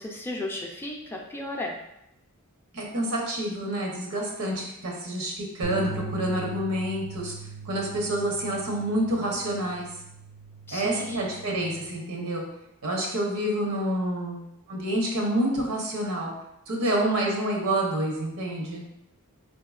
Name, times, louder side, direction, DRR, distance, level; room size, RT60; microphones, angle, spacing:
voice 1, 0.0-1.7 10.7-11.4 17.0-17.1, left 1 dB, 10° left, -1 dB, 0.4 m, -35 dB
voice 2, 2.7-7.3 7.6-9.9 10.7-12.4 12.8-14.4 14.7-16.3 16.7-18.8, right 1 dB, 85° right, -1 dB, 0.9 m, -28 dB
sound 1, 5.6-11.9, right 3 dB, 55° right, 0.5 m, -40 dB
4.1 x 2.8 x 2.4 m, 0.81 s
head